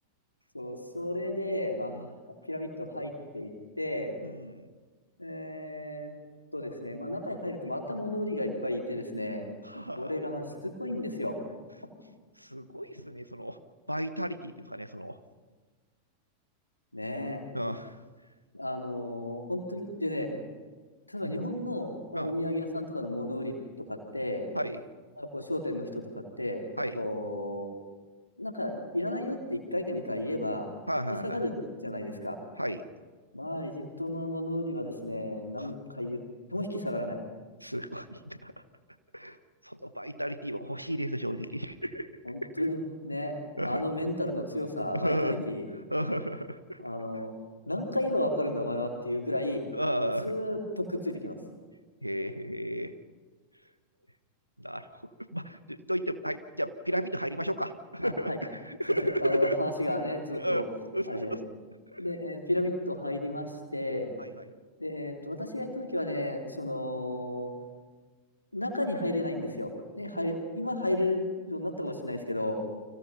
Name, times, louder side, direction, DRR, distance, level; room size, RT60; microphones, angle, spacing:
voice 1, 0.5-1.9 2.5-3.5 3.8-4.1 5.2-6.1 6.5-9.4 10.0-11.4 16.9-17.4 18.5-20.3 21.1-23.5 23.9-24.5 25.2-26.6 26.9-27.7 28.4-30.7 31.1-32.4 33.3-36.2 36.5-37.2 42.2-43.3 43.6-45.7 46.8-47.3 47.7-49.7 50.2-51.4 58.0-58.4 59.0-60.6 61.1-61.4 62.0-64.1 64.8-67.5 68.5-72.5, left 1 dB, 85° left, 2 dB, 3.4 m, -33 dB
voice 2, 4.2-4.7 9.6-10.1 12.4-13.6 13.9-15.2 17.5-17.9 21.2-21.4 22.1-22.3 24.5-24.8 26.8-27.0 30.9-31.4 32.6-32.8 35.6-35.7 37.6-38.5 39.1-39.4 39.6-42.1 42.4-42.7 43.5-43.8 44.9-45.4 45.9-46.8 49.7-50.3 52.0-52.9 54.6-55.0 55.3-59.6 60.3-60.6 60.9-61.4 61.9-62.1 64.2-64.3, equal, 90° right, 12 dB, 1.3 m, -33 dB
30.0 x 25.0 x 5.7 m, 1.4 s
figure-of-eight pair, 90°, 0 cm